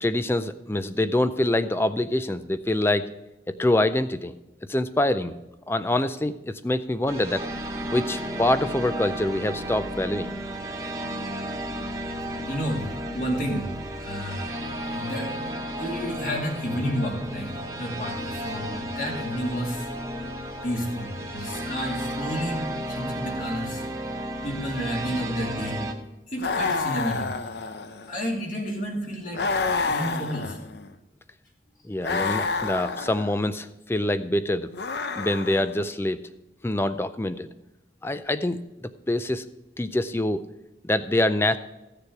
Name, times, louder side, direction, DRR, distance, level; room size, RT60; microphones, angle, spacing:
voice 1, 0.0-3.1 3.5-4.3 4.7-5.4 5.7-7.5 7.9-10.3 31.8-34.7 35.2-36.2 36.6-37.5 38.0-39.4 39.8-40.4 40.8-41.6, left 1 dB, 15° left, 12 dB, 0.4 m, -25 dB
sound 1, 7.1-25.9, right 1 dB, 20° right, 1.1 m, -33 dB
voice 2, 12.5-13.7 14.0-14.5 14.9-15.3 15.8-17.5 17.8-19.9 20.6-23.8 24.4-25.8 26.3-27.3 28.1-29.4 29.9-30.6, equal, 50° left, -1 dB, 2.6 m, -31 dB
sound 2, 26.4-28.2 29.3-30.9 32.0-33.4 34.7-35.8, left 4 dB, 75° left, 0.7 m, -29 dB
14.5 x 6.8 x 4.6 m, 0.99 s
head